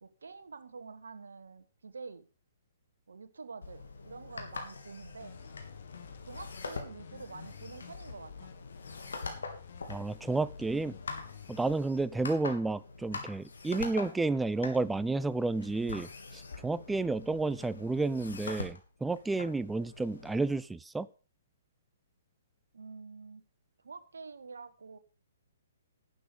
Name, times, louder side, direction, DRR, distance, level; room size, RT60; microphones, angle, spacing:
voice 1, 0.0-2.3 3.1-5.4 6.3-8.5 22.7-23.4 23.8-25.0, right 4 dB, 75° right, 1.4 m, -47 dB
sound 1, 3.6-20.6, left 4 dB, 70° left, 3.2 m, -44 dB
sound 2, 5.2-11.8, left 7 dB, 55° left, 1.7 m, -50 dB
voice 2, 9.9-10.9 11.5-21.1, right 3 dB, 5° right, 0.4 m, -31 dB
11.5 x 8.5 x 5.2 m
figure-of-eight pair, 130°, 0 cm